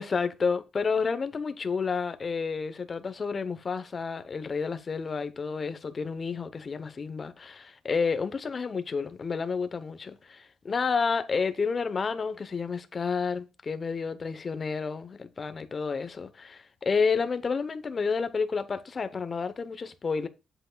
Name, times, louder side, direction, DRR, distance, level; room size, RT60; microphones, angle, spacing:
voice 1, 0.0-20.3, left 5 dB, 35° left, 0.8 m, -30 dB
7.9 x 7.8 x 2.3 m
cardioid pair, 110°, 0 cm